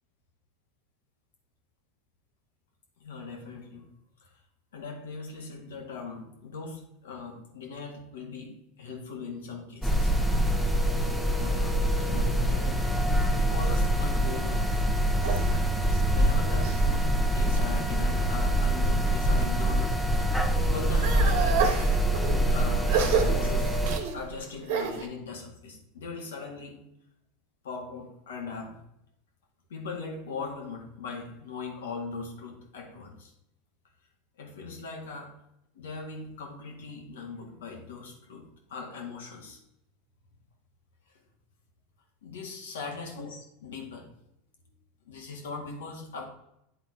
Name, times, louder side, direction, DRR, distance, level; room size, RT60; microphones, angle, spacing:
voice 1, 3.0-3.9 4.2-4.4 4.7-10.1 11.4-12.9 13.3-14.8 16.1-21.9 22.2-23.8 24.1-26.8 27.6-28.8 29.7-33.3 34.4-35.3 35.7-39.6 42.2-44.1 45.0-46.2, left 4 dB, 85° left, 2 dB, 1.9 m, -40 dB
sound 1, 9.8-24.0, right 1 dB, 5° left, 1.0 m, -25 dB
sound 2, 14.3-16.9 17.3-17.9 18.5-19.5 19.9-25.1, right 6 dB, 70° right, 1.2 m, -31 dB
8.9 x 4.1 x 4.7 m, 0.82 s
hypercardioid pair, 105°, 0 cm